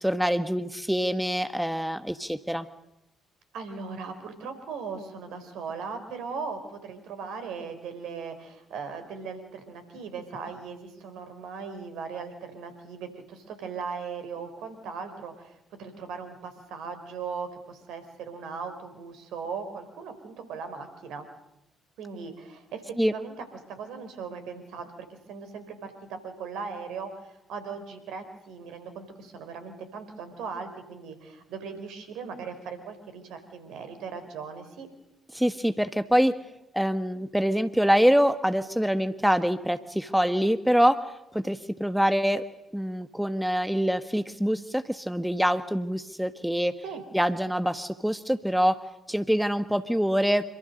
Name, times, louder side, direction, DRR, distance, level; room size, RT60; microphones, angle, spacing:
voice 1, 0.0-2.7 23.0-23.1 35.3-36.3 36.7-41.1 41.3-42.4 42.7-46.7 47.1-48.8 49.1-50.5, equal, 5° right, 10 dB, 1.5 m, -25 dB
voice 2, 3.5-21.3 22.0-34.9 46.8-47.0, right 5 dB, 65° right, 8 dB, 4.1 m, -38 dB
27.0 x 25.5 x 6.6 m, 0.87 s
figure-of-eight pair, 45°, 0 cm